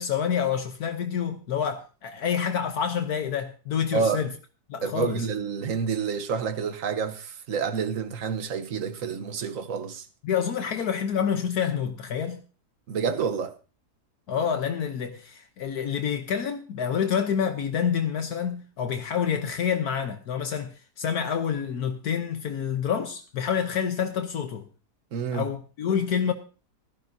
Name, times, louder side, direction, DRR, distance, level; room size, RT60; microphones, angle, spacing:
voice 1, 0.0-4.3 4.7-5.3 10.2-12.4 14.3-24.7 25.3-26.3, left 7 dB, 70° left, 1.4 m, -28 dB
voice 2, 4.8-10.1 12.9-13.5 25.1-25.5, right 6 dB, 55° right, 1.3 m, -28 dB
16.5 x 14.0 x 2.7 m
omnidirectional pair, 1.7 m